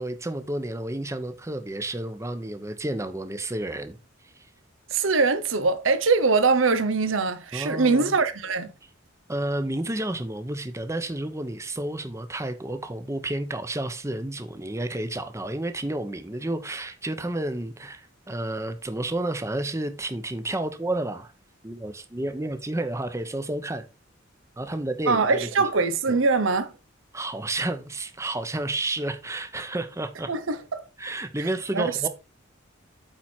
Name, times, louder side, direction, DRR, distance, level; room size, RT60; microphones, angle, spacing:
voice 1, 0.0-4.0 4.4-4.5 7.5-8.1 9.3-21.3 21.6-23.8 24.6-25.5 26.1-26.2 27.1-30.3 31.0-32.1, right 1 dB, 15° right, 0.8 m, -31 dB
voice 2, 4.9-8.7 25.1-26.7 30.3-30.8 31.4-31.5 31.7-32.1, right 4 dB, 80° right, 0.9 m, -23 dB
8.9 x 4.5 x 4.4 m
head